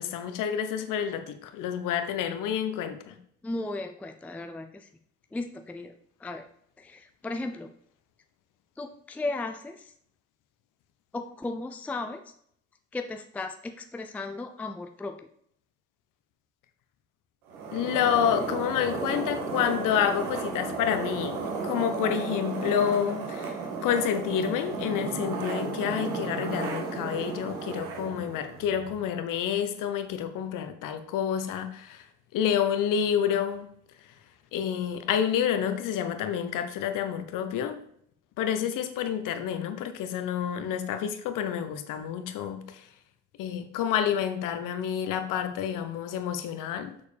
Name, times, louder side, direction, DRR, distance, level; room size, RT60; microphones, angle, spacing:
voice 1, 0.0-3.1 17.7-23.5 23.8-32.0 32.3-33.7 34.5-37.8 38.4-42.6 43.4-46.9, left 9 dB, 50° left, 9 dB, 1.0 m, -29 dB
voice 2, 3.4-4.9 5.3-5.9 6.2-6.5 6.8-7.7 8.8-9.9 11.1-12.3 12.9-15.3, left 2 dB, 5° left, 6 dB, 0.5 m, -35 dB
sound 1, 17.5-29.0, right 4 dB, 65° right, 1.7 m, -34 dB
6.9 x 6.3 x 3.4 m, 0.67 s
figure-of-eight pair, 60°, 41 cm